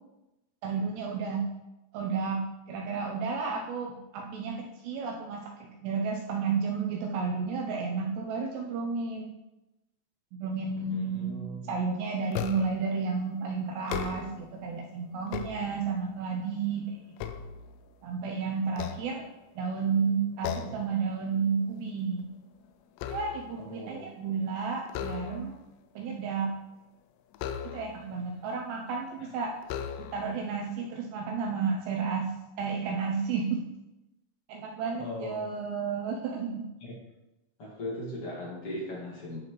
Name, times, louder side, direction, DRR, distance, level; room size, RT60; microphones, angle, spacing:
voice 1, 0.6-1.4 1.9-2.4 2.7-9.3 10.3-17.2 18.0-19.2 19.6-22.3 23.1-25.6 26.0-26.5 27.6-29.6 30.0-32.3 32.6-33.6 34.5-36.7, right 5 dB, 80° right, 1 dB, 2.5 m, -32 dB
voice 2, 10.9-11.7 20.5-20.7 23.6-24.1 35.0-35.5 36.8-37.0 37.6-39.4, left 1 dB, 45° left, -5 dB, 1.9 m, -39 dB
sound 1, 12.3-12.9 13.7-14.5 15.1-16.2 16.7-18.2 18.7-19.7 20.4-20.9 21.3-21.6 21.9-23.6 24.9-25.7 27.3-28.1 28.9-29.0 29.6-30.4, left 8 dB, 90° left, 2.4 m, -38 dB
11.0 x 6.1 x 3.1 m, 0.96 s
omnidirectional pair, 5.6 m